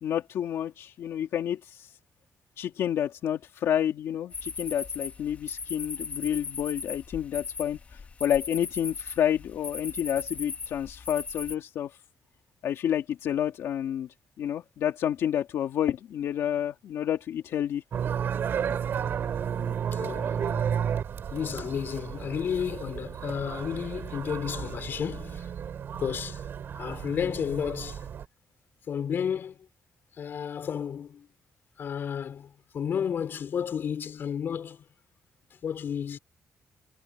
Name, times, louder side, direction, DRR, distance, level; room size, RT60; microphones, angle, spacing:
voice 1, 0.0-1.9 2.6-12.0 12.6-14.1 14.4-17.8, left 10 dB, 75° left, 2.2 m, -29 dB
sound 1, 4.3-11.5, left 5 dB, 30° left, 3.1 m, -38 dB
sound 2, 17.9-28.3, right 8 dB, 55° right, 3.3 m, -33 dB
voice 2, 19.9-20.7 21.3-25.5 25.9-26.4 26.7-28.0 28.9-29.6 30.2-31.3 31.8-34.8 35.6-36.2, left 8 dB, 50° left, 5.4 m, -32 dB
cardioid pair, 155°, 5 cm